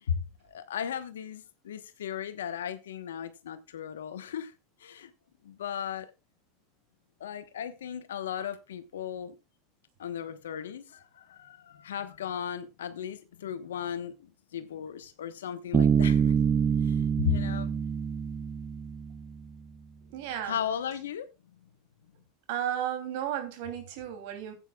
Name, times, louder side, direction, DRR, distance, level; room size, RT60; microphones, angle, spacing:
voice 1, 0.0-4.5 4.8-5.1 5.4-6.1 7.2-9.3 10.0-17.9 20.4-21.3, left 8 dB, 85° left, 1.1 m, -36 dB
Bass guitar, 15.7-19.4, right 7 dB, 30° right, 0.8 m, -26 dB
voice 2, 20.1-20.6 22.5-24.5, right 10 dB, 65° right, 2.9 m, -33 dB
15.5 x 9.0 x 2.3 m
hypercardioid pair, 95°, 0 cm